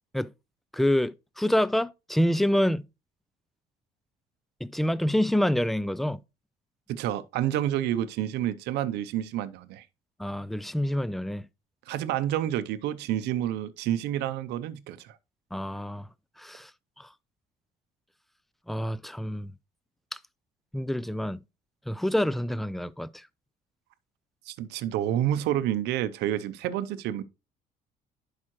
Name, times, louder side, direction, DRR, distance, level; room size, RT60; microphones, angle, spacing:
voice 1, 0.7-2.9 4.6-6.2 10.2-11.5 15.5-16.1 16.4-16.7 17.0-17.1 18.7-19.5 20.7-21.4 21.9-23.2, equal, ahead, 0.3 m, -27 dB
voice 2, 6.9-9.9 11.9-15.2 24.5-27.2, right 12 dB, 85° right, 0.6 m, -29 dB
11.0 x 4.9 x 3.0 m
cardioid pair, 110°, 17 cm